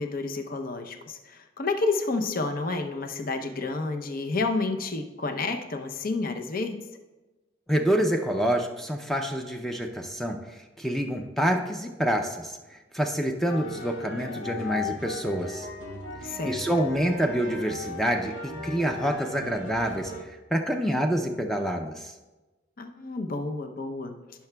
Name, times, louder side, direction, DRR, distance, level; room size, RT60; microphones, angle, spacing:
voice 1, 0.0-6.8 16.2-16.9 22.8-24.1, left 3 dB, 50° left, 5 dB, 0.6 m, -30 dB
voice 2, 7.7-15.7 16.2-22.1, equal, ahead, 3 dB, 0.4 m, -27 dB
sound 1, 13.5-20.2, left 3 dB, 90° left, 1.2 m, -37 dB
16.0 x 5.8 x 2.2 m, 1.1 s
head